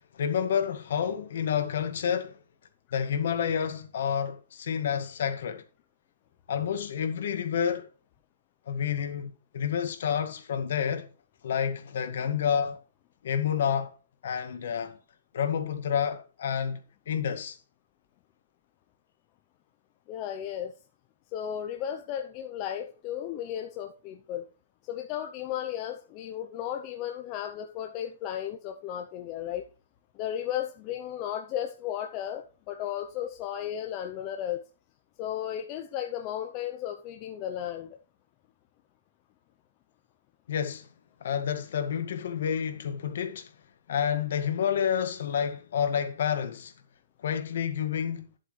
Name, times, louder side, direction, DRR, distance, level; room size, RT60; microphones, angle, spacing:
voice 1, 0.1-2.4 2.9-5.6 6.5-7.9 8.7-11.1 11.4-12.8 13.2-13.9 14.2-15.0 15.3-16.8 17.1-17.6 40.5-40.9 41.2-43.5 43.9-46.7 47.2-48.3, left 8 dB, 45° left, 1.7 m, -29 dB
voice 2, 20.1-20.7 21.3-24.4 24.8-29.6 30.1-34.6 35.2-38.0, left 10 dB, 20° left, 0.6 m, -34 dB
11.0 x 7.8 x 3.2 m
hypercardioid pair, 180°, 0 cm